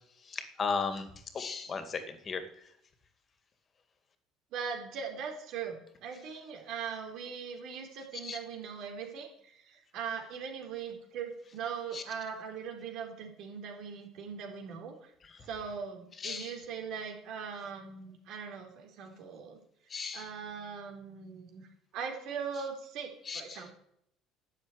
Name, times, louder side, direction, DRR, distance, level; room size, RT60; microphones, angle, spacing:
voice 1, 0.2-1.1 1.3-2.4 8.2-8.4 11.9-12.0 15.2-15.4 16.2-16.6 19.9-20.3 23.3-23.6, left 5 dB, 35° left, 9 dB, 2.4 m, -36 dB
voice 2, 4.5-15.1 15.4-19.6 20.1-21.7 21.9-23.7, right 6 dB, 65° right, 3 dB, 4.1 m, -40 dB
11.5 x 7.8 x 10.0 m, 0.72 s
supercardioid pair, 105°, 0 cm